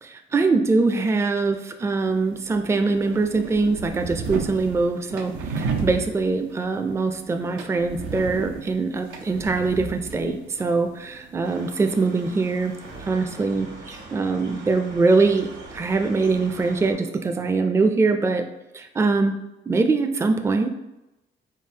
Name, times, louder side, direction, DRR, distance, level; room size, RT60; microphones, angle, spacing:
voice 1, 0.0-12.8 13.0-18.5 18.7-19.4 19.7-20.7, right 3 dB, 15° right, 6 dB, 0.4 m, -23 dB
sound 1, 2.0-13.1, right 5 dB, 85° right, 0.6 m, -35 dB
sound 2, 11.4-16.9, right 2 dB, 70° right, 1.5 m, -42 dB
4.3 x 3.7 x 2.7 m, 0.95 s
cardioid pair, 90°, 20 cm